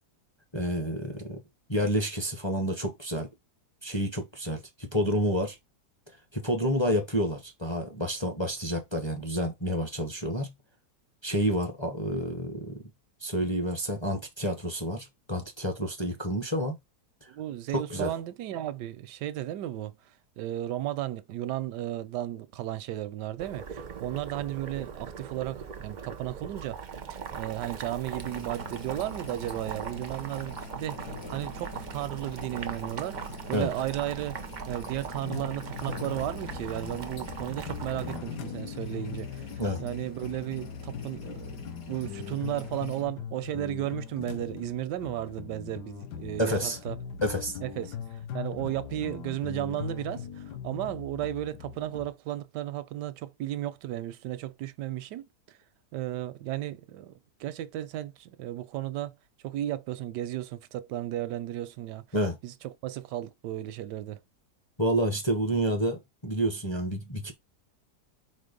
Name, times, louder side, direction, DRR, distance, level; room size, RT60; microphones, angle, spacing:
voice 1, 0.5-1.4 1.7-3.3 3.8-5.6 6.3-10.5 11.2-12.8 13.2-16.8 17.7-18.1 33.5-33.7 39.6-39.8 46.4-46.8 47.2-47.6 62.1-62.4 64.8-67.3, equal, 25° left, 0.7 m, -29 dB
voice 2, 17.3-20.0 20.4-26.8 27.1-33.2 33.5-34.4 34.7-41.6 41.9-47.0 47.6-55.3 55.9-57.1 57.4-59.1 59.4-62.0 62.4-64.2, right 13 dB, 90° right, 1.3 m, -34 dB
Boiling, 23.4-38.2, right 6 dB, 45° right, 0.6 m, -40 dB
sound 1, 28.2-43.0, left 2 dB, 60° left, 1.6 m, -44 dB
sound 2, 35.2-52.1, left 8 dB, 80° left, 1.4 m, -40 dB
4.3 x 4.2 x 5.1 m
omnidirectional pair, 1.8 m